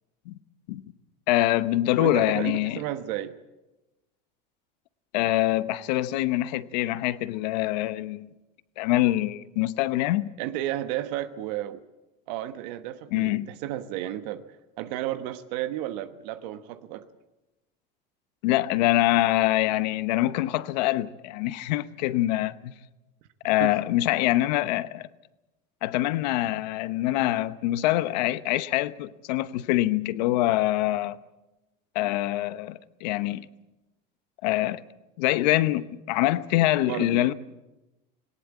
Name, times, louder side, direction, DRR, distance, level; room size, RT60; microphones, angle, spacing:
voice 1, 1.3-2.8 5.1-8.3 8.8-10.3 13.1-13.5 18.4-22.7 23.4-25.1 25.8-31.2 31.9-33.5 34.4-34.8 35.2-37.3, left 16 dB, 85° left, 0.9 m, -25 dB
voice 2, 2.0-3.4 10.4-11.8 12.3-14.4 14.8-17.1 23.6-23.8 36.9-37.3, right 13 dB, 80° right, 1.2 m, -32 dB
19.0 x 18.5 x 8.7 m
supercardioid pair, 110°, 21 cm